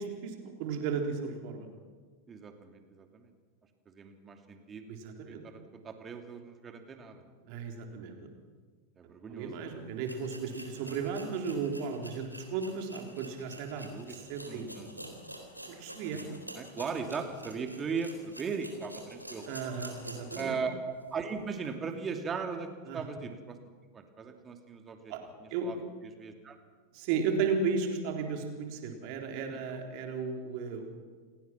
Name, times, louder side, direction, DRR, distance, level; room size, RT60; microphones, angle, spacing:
voice 1, 0.0-1.7 4.9-5.4 7.4-8.2 9.3-15.2 15.7-16.2 19.5-20.6 22.9-23.0 25.1-25.2 25.5-25.7 26.9-31.0, right 5 dB, 45° right, 3 dB, 3.7 m, -35 dB
voice 2, 2.3-3.3 3.9-5.0 5.3-7.3 9.0-9.5 10.7-11.1 13.8-14.2 14.5-14.9 16.1-19.5 20.3-23.6 23.9-25.1 25.4-25.8 26.0-26.6 29.5-29.8, right 5 dB, 20° right, 5 dB, 2.7 m, -38 dB
sound 1, 9.5-9.6 10.0-20.6 21.0-21.1 21.6-21.7, equal, 90° right, 3.8 m, -48 dB
28.5 x 18.0 x 6.1 m, 1.5 s
figure-of-eight pair, 90°, 0 cm